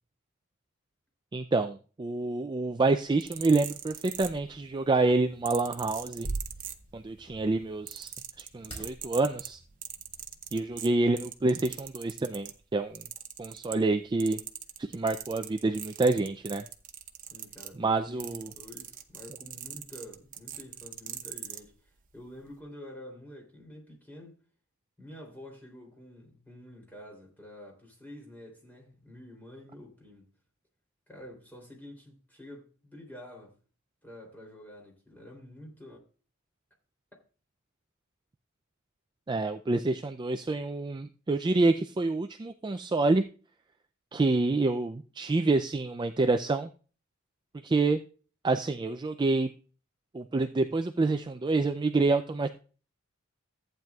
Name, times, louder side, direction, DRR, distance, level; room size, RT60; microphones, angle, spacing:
voice 1, 1.3-6.3 6.9-8.1 8.4-9.6 10.5-13.0 13.4-14.4 14.8-16.6 17.8-18.5 39.3-43.2 44.1-46.7 47.6-48.0 48.4-49.5 50.1-52.5, right 3 dB, 20° right, 0.3 m, -27 dB
sound 1, 3.0-4.7 5.4-7.2 7.5-12.6 12.9-13.9 14.2-21.6 22.4-22.5, right 10 dB, 40° right, 0.8 m, -41 dB
sound 2, 4.1-11.2, right 2 dB, 25° left, 4.2 m, -44 dB
voice 2, 17.2-24.4 25.0-30.3 31.1-33.6 34.0-36.0, left 1 dB, 10° left, 3.2 m, -48 dB
14.5 x 9.0 x 2.3 m
head